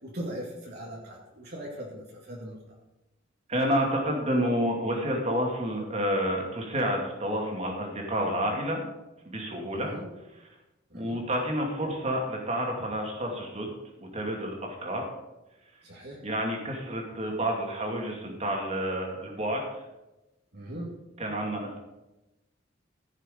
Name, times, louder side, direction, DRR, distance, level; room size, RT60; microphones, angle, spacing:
voice 1, 0.0-2.6 9.7-10.1 10.9-11.2 15.8-16.2 20.5-21.0, right 1 dB, 55° right, -2 dB, 2.0 m, -39 dB
voice 2, 3.5-8.9 9.2-9.9 10.3-10.5 10.9-13.7 14.0-15.0 16.2-19.8 21.2-21.8, equal, 35° right, 0 dB, 2.5 m, -29 dB
15.0 x 6.5 x 5.3 m, 0.99 s
head